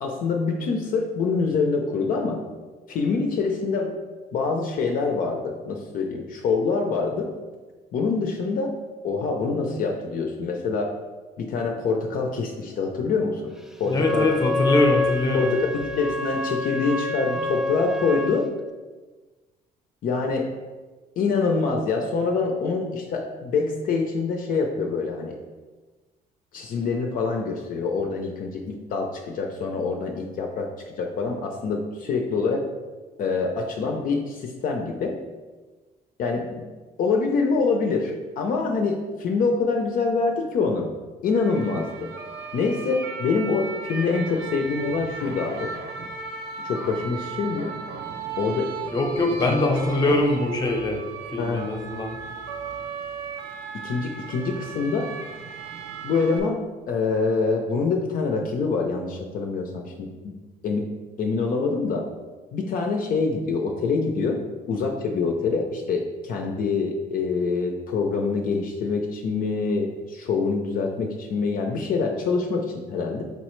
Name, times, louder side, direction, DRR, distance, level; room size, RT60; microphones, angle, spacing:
voice 1, 0.0-2.4 2.9-4.0 4.3-7.3 7.9-8.7 9.0-10.9 11.4-13.5 13.8-14.3 15.3-18.5 20.0-20.5 21.2-25.4 26.5-32.6 33.2-35.2 36.2-36.6 37.0-40.9 41.2-42.1 42.5-45.7 46.6-47.7 48.4-48.7 49.5-49.7 50.0-50.1 51.4-51.7 53.8-55.1 56.0-56.6 56.9-60.3 60.6-60.9 61.2-62.0 62.5-64.4 64.7-73.2, left 4 dB, 55° left, 2 dB, 0.5 m, -25 dB
voice 2, 13.8-15.5 48.9-51.0 51.3-52.2, left 2 dB, 25° left, 2 dB, 0.8 m, -23 dB
Wind instrument woodwind instrument, 13.9-18.4, left 2 dB, 5° right, 0.3 m, -27 dB
sound 1, 41.3-56.4, right 4 dB, 75° right, 0.7 m, -36 dB
5.4 x 3.2 x 3.1 m, 1.3 s
cardioid pair, 110°, 17 cm